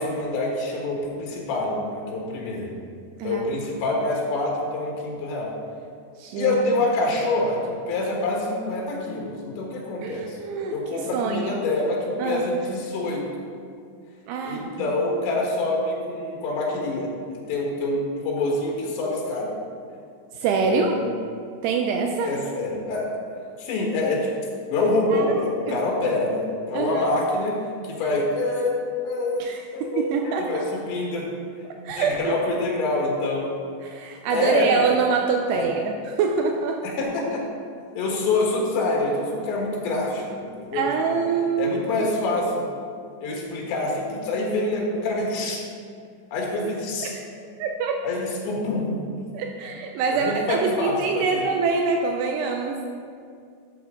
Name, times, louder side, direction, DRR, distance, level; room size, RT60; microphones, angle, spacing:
voice 1, 0.0-2.7 3.2-5.5 6.4-7.6 7.9-10.4 10.7-13.2 14.5-19.6 20.6-21.1 22.2-23.1 23.6-24.3 24.7-27.5 27.8-28.8 29.0-29.5 29.7-31.3 32.0-33.5 34.3-34.7 35.5-35.7 36.8-37.5 38.0-41.2 41.6-42.6 43.2-45.6 46.3-47.1 48.0-49.1 50.1-51.5, left 2 dB, 90° left, -2 dB, 3.8 m, -26 dB
voice 2, 6.2-6.6 10.0-11.6 12.2-12.5 14.3-15.0 20.3-20.9 21.6-22.4 25.1-25.4 25.7-25.8 26.7-27.1 29.4-30.7 31.7-32.4 33.8-36.8 40.7-42.1 47.0-47.3 47.6-48.0 49.3-52.8, right 5 dB, 80° right, 2 dB, 2.6 m, -25 dB
12.5 x 8.0 x 3.7 m, 2.3 s
omnidirectional pair, 4.9 m